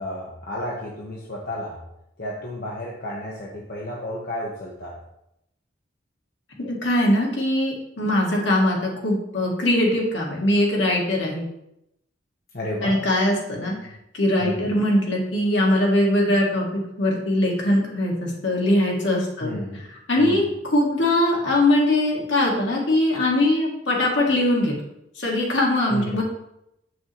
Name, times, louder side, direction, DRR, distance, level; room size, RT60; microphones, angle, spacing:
voice 1, 0.0-1.8 2.2-5.0 12.5-13.0 14.4-14.7 19.4-19.8 20.2-20.5 25.9-26.2, left 1 dB, 50° left, -4 dB, 1.2 m, -32 dB
voice 2, 6.6-11.5 12.8-13.8 14.1-19.5 20.1-24.7 25.2-26.2, left 1 dB, 70° left, -2 dB, 1.9 m, -21 dB
7.7 x 6.2 x 3.0 m, 0.82 s
head